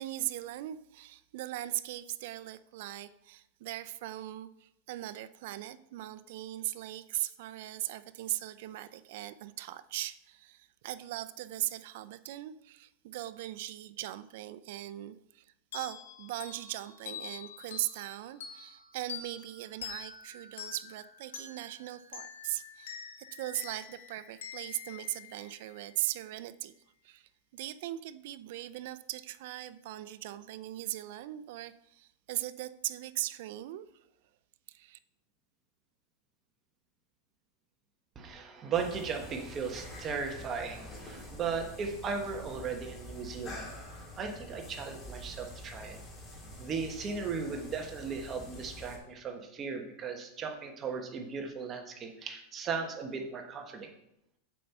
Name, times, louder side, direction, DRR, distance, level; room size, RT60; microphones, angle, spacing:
voice 1, 0.0-15.5 15.7-23.0 23.3-26.7 27.0-33.9 34.7-35.0, right 15 dB, 60° right, 14 dB, 0.5 m, -39 dB
sound 1, 15.7-26.0, left 7 dB, 90° left, 1.7 m, -46 dB
voice 2, 38.1-43.7 44.2-46.0 46.6-53.9, right 5 dB, 25° right, 3 dB, 1.3 m, -37 dB
sound 2, 38.7-49.0, left 1 dB, 25° left, 2.9 m, -47 dB
7.6 x 5.4 x 6.8 m, 0.81 s
supercardioid pair, 145°, 0 cm